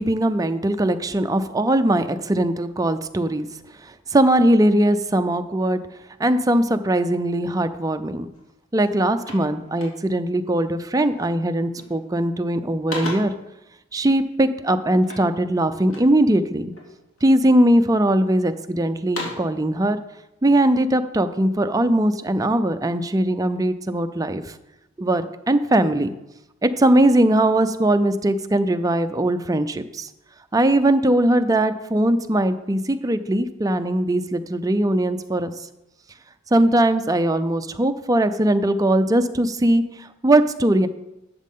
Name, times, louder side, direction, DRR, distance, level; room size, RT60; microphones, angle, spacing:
voice 1, 0.0-3.5 4.1-5.8 6.2-8.3 8.7-13.3 13.9-16.7 17.2-20.0 20.4-24.5 25.0-26.1 26.6-30.1 30.5-35.5 36.5-40.9, right 1 dB, 15° right, 9 dB, 0.5 m, -20 dB
sound 1, 8.3-8.5 8.8-10.3 11.0-11.3 11.6-12.1 12.5-13.5 15.0-16.2 16.7-17.4 17.9-18.5 18.9-19.6, left 1 dB, 80° left, 2.5 m, -37 dB
11.5 x 7.4 x 3.7 m, 0.92 s
head